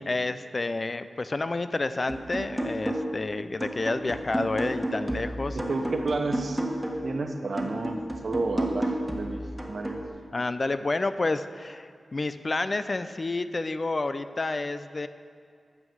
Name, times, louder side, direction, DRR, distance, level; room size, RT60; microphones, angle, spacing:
voice 1, 0.0-5.6 10.3-15.1, left 2 dB, 40° left, 11 dB, 0.4 m, -29 dB
sound 1, 2.1-3.3 3.6-7.1 7.6-10.1, right 1 dB, 5° right, 1.5 m, -32 dB
voice 2, 5.5-6.6 7.0-10.0, right 3 dB, 65° right, 5 dB, 1.0 m, -31 dB
9.7 x 7.2 x 6.2 m, 2.2 s
cardioid pair, 70°, 0 cm